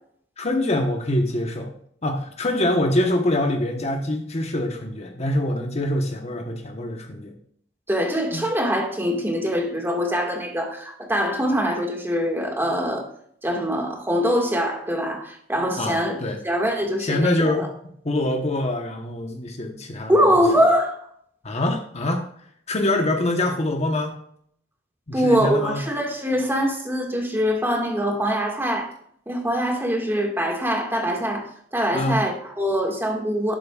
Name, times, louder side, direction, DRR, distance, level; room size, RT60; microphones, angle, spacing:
voice 1, 0.4-1.7 2.0-7.3 8.3-8.4 15.8-16.4 17.0-17.7 18.0-20.2 21.4-22.2 22.7-24.2 25.1-25.8 31.9-32.2, left 1 dB, 35° left, 3 dB, 1.1 m, -24 dB
voice 2, 7.9-13.1 13.4-16.1 16.4-17.7 20.1-21.1 25.1-28.9 29.3-33.6, equal, 10° right, 1 dB, 1.9 m, -23 dB
11.5 x 10.5 x 2.4 m, 0.65 s
head